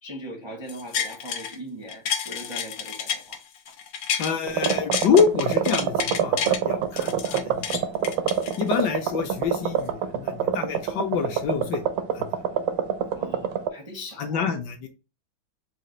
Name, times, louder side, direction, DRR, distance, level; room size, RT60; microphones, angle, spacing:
voice 1, 0.0-3.4 13.1-14.4, equal, 30° right, 0.4 m, -40 dB
sound 1, 0.7-1.6 1.9-4.3 4.6-6.6 7.0-9.0 9.4-9.5, left 8 dB, 90° left, 1.5 m, -30 dB
voice 2, 4.2-7.8 8.6-11.8 12.1-12.3 14.2-14.9, left 6 dB, 70° left, 1.1 m, -26 dB
sound 2, 4.5-13.7, right 9 dB, 80° right, 1.3 m, -25 dB
4.2 x 2.4 x 3.7 m
omnidirectional pair, 2.1 m